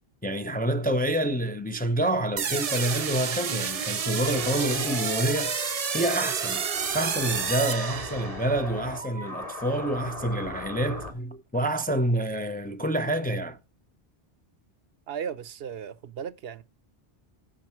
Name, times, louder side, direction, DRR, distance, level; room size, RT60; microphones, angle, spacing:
voice 1, 0.2-5.6 5.9-6.6 6.9-13.6, right 1 dB, 10° left, 0.5 m, -27 dB
sound 1, 2.4-8.5, right 7 dB, 45° right, 0.6 m, -30 dB
sound 2, 4.2-11.1, left 2 dB, 35° left, 2.2 m, -38 dB
voice 2, 15.1-16.6, right 7 dB, 70° right, 0.9 m, -36 dB
7.6 x 5.5 x 7.2 m
omnidirectional pair, 1.0 m